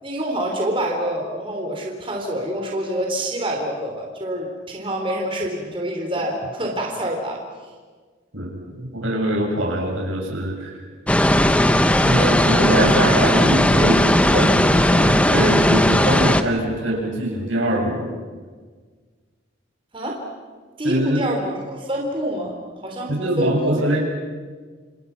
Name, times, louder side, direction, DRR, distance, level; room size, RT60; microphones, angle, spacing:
voice 1, 0.0-7.4 19.9-20.2 20.8-22.5 22.8-23.7, right 1 dB, 25° right, 0 dB, 3.8 m, -26 dB
voice 2, 8.3-10.8 12.0-18.1 20.8-21.2 23.1-24.0, right 1 dB, 85° right, -1 dB, 7.2 m, -23 dB
sound 1, 11.1-16.4, left 1 dB, 5° left, 0.9 m, -17 dB
29.5 x 27.0 x 6.0 m, 1.5 s
head